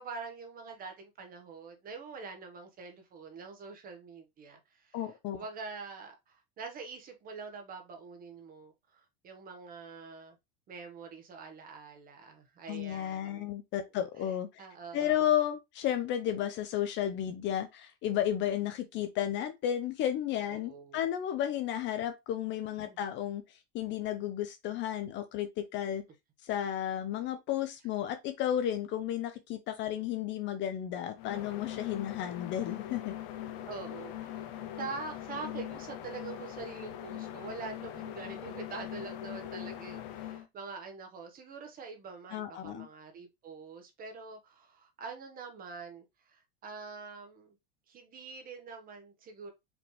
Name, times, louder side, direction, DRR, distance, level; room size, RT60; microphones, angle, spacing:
voice 1, 0.0-5.0 5.3-10.4 10.7-13.5 14.6-15.2 20.5-21.1 22.7-23.0 33.7-34.5 34.8-47.6 47.9-49.5, right 4 dB, 25° right, 1.2 m, -45 dB
voice 2, 4.9-5.4 12.7-14.6 14.9-26.0 26.4-33.1 42.3-42.9, left 11 dB, 35° left, 0.6 m, -33 dB
sound 1, 31.2-40.5, left 11 dB, 60° left, 0.9 m, -41 dB
5.1 x 3.4 x 3.0 m
supercardioid pair, 150°, 32 cm